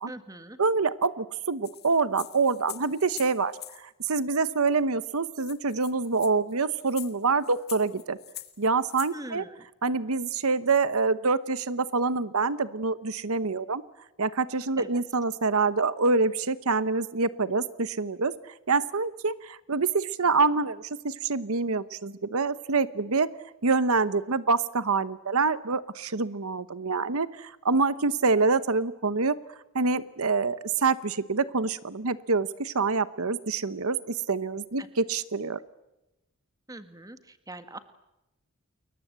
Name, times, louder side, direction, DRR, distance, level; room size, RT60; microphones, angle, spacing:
voice 1, 0.1-0.6 9.1-9.7 14.8-15.0 34.8-34.9 35.1-35.2 36.7-37.8, right 1 dB, 15° right, 10 dB, 1.7 m, -42 dB
voice 2, 0.6-8.2 8.6-9.4 9.8-13.8 14.2-18.3 18.7-23.3 23.6-29.4 29.7-35.6, right 4 dB, 75° right, 15 dB, 1.0 m, -26 dB
sound 1, 1.6-3.8 4.8-4.9 5.1-5.2 5.4-9.1, left 14 dB, 45° left, 1.8 m, -44 dB
29.5 x 22.5 x 8.1 m, 0.94 s
head